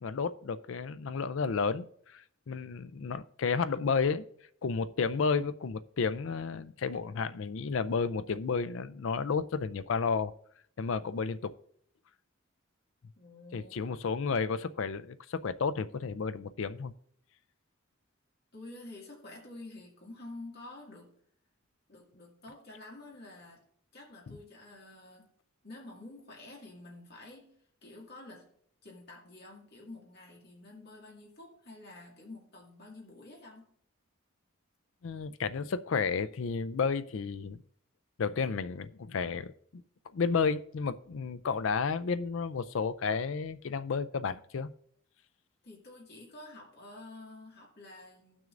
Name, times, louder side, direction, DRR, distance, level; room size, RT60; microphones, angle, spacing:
voice 1, 0.0-4.2 4.6-10.3 10.8-11.5 13.5-16.9 24.3-24.4 35.0-37.6 38.2-39.8 40.1-44.7, left 5 dB, 65° left, 13 dB, 0.4 m, -32 dB
voice 2, 13.2-14.0 18.5-21.1 21.9-23.6 23.9-25.3 25.6-27.5 27.8-28.5 28.8-33.7 45.6-48.5, left 2 dB, 50° left, -2 dB, 2.1 m, -49 dB
16.0 x 6.2 x 2.5 m, 0.63 s
head